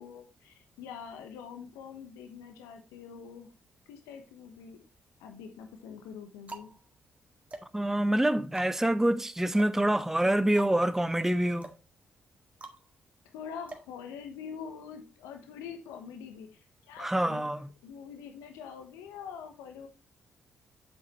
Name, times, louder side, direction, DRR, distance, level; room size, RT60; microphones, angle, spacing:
voice 1, 0.0-3.5 3.9-4.8 5.2-6.7 13.3-19.9, left 7 dB, 75° left, 1.0 m, -45 dB
sound 1, 4.5-5.2 5.9-14.7, right 2 dB, 25° right, 1.8 m, -49 dB
voice 2, 7.7-11.7 17.0-17.7, right 1 dB, 10° right, 0.6 m, -26 dB
7.8 x 7.4 x 3.1 m
hypercardioid pair, 40°, 5 cm